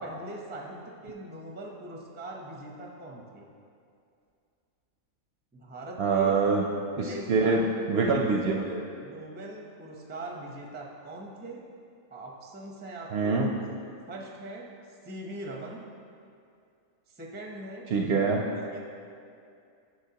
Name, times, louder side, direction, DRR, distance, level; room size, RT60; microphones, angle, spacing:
voice 1, 0.0-3.5 5.5-6.4 6.9-7.7 8.0-8.2 9.0-11.6 12.1-13.4 14.1-14.7 15.0-15.8 17.1-17.9 18.5-18.8, right 1 dB, 15° right, -1 dB, 0.4 m, -41 dB
voice 2, 6.0-6.6 7.0-8.8 13.1-13.5 17.9-18.4, right 4 dB, 60° right, 0 dB, 0.7 m, -25 dB
9.7 x 6.3 x 2.8 m, 2.4 s
omnidirectional pair, 1.4 m